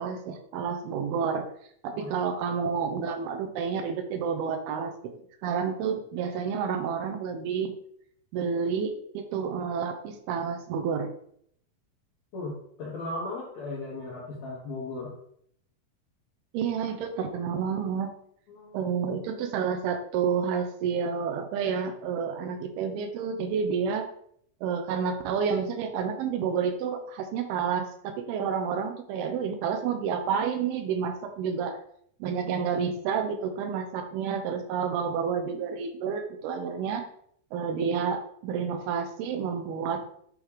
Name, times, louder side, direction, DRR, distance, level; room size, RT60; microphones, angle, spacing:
voice 1, 0.0-1.5 1.8-4.9 5.4-7.7 8.3-11.1 16.5-18.1 18.7-24.1 24.6-31.8 32.2-37.1 37.5-40.0, right 6 dB, 85° right, 6 dB, 2.6 m, -29 dB
voice 2, 12.3-15.1 18.5-18.9, left 2 dB, 70° left, -4 dB, 1.7 m, -37 dB
8.9 x 3.6 x 3.2 m, 0.67 s
omnidirectional pair, 4.5 m